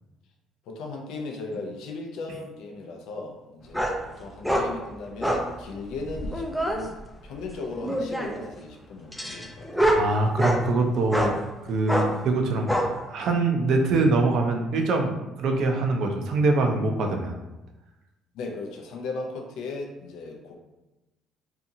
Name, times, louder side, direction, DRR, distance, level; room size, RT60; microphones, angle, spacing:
voice 1, 0.7-7.0 7.2-9.9 18.3-20.5, left 3 dB, 75° left, 2 dB, 0.5 m, -37 dB
sound 1, 3.7-4.0 4.4-4.7 5.2-5.5 6.0-6.8 7.8-8.4 9.1-10.6 11.1-11.3 11.9-12.1 12.7-12.9, equal, 5° left, 0.4 m, -25 dB
voice 2, 10.0-12.7 13.1-17.3, right 3 dB, 70° right, 3 dB, 0.4 m, -24 dB
2.7 x 2.4 x 2.6 m, 1.0 s
cardioid pair, 95°, 0 cm